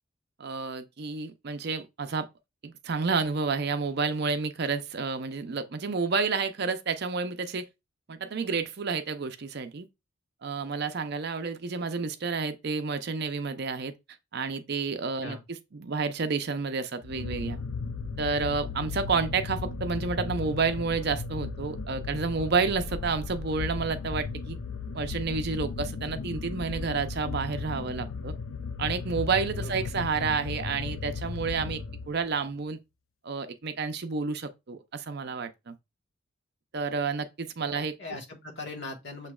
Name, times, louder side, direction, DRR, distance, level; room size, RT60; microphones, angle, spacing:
voice 1, 0.4-2.3 2.6-7.7 8.1-9.9 10.4-13.9 14.3-15.4 15.7-17.6 18.2-24.6 24.9-28.3 28.8-31.8 32.1-32.8 33.2-35.8 36.7-37.9, right 4 dB, 55° right, 0.5 m, -30 dB
sound 1, 17.0-32.4, left 4 dB, 80° left, 0.5 m, -36 dB
voice 2, 37.7-39.3, left 2 dB, 55° left, 1.3 m, -40 dB
6.8 x 3.1 x 2.3 m
head